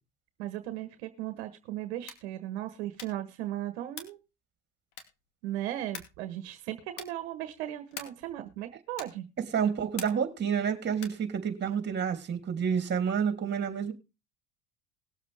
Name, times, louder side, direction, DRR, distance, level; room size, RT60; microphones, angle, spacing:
voice 1, 0.4-4.2 5.4-9.2, right 13 dB, 75° right, 1.4 m, -37 dB
sound 1, 2.0-2.3 2.9-3.3 3.9-4.3 4.9-5.3 5.9-6.3 6.9-7.3 7.9-8.3 8.9-9.3 9.9-10.4 10.9-11.3, left 7 dB, 65° left, 2.6 m, -44 dB
voice 2, 9.5-13.9, right 7 dB, 35° right, 3.3 m, -29 dB
20.0 x 7.4 x 3.6 m
hypercardioid pair, 85°, 32 cm